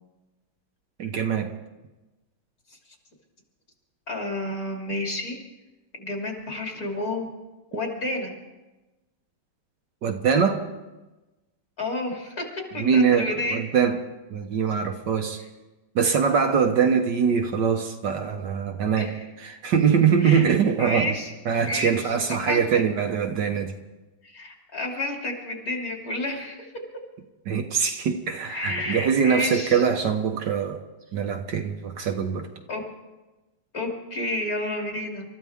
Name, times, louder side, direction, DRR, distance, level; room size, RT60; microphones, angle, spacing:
voice 1, 1.0-1.5 10.0-10.7 12.8-14.0 14.3-15.4 15.9-21.1 21.4-23.7 27.5-30.8 31.1-32.5, right 6 dB, 65° right, 1.6 m, -23 dB
voice 2, 4.1-5.4 6.0-7.3 7.7-8.3 11.8-12.4 12.7-13.6 19.0-19.2 20.2-20.4 20.8-21.3 21.6-22.8 24.2-26.7 28.5-29.8 32.7-32.8 33.7-35.2, left 1 dB, 45° left, 3.2 m, -30 dB
28.0 x 14.0 x 3.6 m
omnidirectional pair, 2.2 m